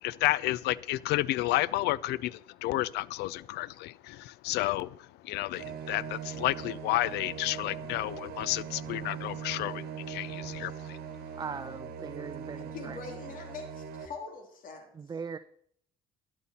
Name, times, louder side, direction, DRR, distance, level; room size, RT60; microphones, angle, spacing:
voice 1, 0.0-5.0 5.2-11.0, left 16 dB, 85° left, 0.4 m, -31 dB
sound 1, 5.5-14.1, right 8 dB, 65° right, 1.4 m, -41 dB
voice 2, 11.4-13.0 15.0-15.4, right 5 dB, 25° right, 0.5 m, -40 dB
voice 3, 12.5-14.9, left 5 dB, 55° left, 2.8 m, -43 dB
12.5 x 11.0 x 4.2 m
cardioid pair, 110°, 17 cm